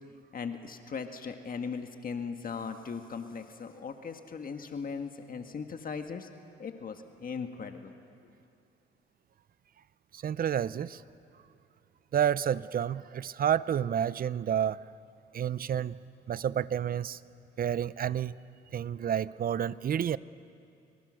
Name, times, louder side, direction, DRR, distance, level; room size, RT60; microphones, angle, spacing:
voice 1, 0.3-6.3 6.6-7.9, left 5 dB, 45° left, 6 dB, 1.6 m, -38 dB
voice 2, 10.1-11.0 12.1-14.8 15.3-16.0 16.3-17.2 17.6-18.3 18.7-20.2, right 9 dB, 45° right, 18 dB, 0.6 m, -29 dB
28.0 x 23.5 x 6.4 m, 2.5 s
cardioid pair, 90°, 20 cm